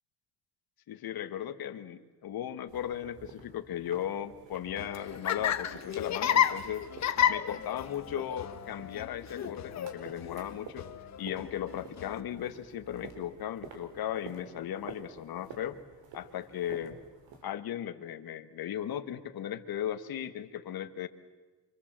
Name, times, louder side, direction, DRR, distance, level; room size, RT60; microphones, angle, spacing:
voice 1, 0.9-6.9 7.2-10.9 11.2-15.8 16.1-17.0 17.4-21.1, left 10 dB, 55° left, 9 dB, 1.6 m, -37 dB
sound 1, 2.7-17.4, right 4 dB, 85° right, 4.5 m, -51 dB
Laughter, 4.7-12.2, left 9 dB, 40° left, 1.0 m, -32 dB
27.5 x 25.0 x 7.5 m, 1.3 s
cardioid pair, 175°, 42 cm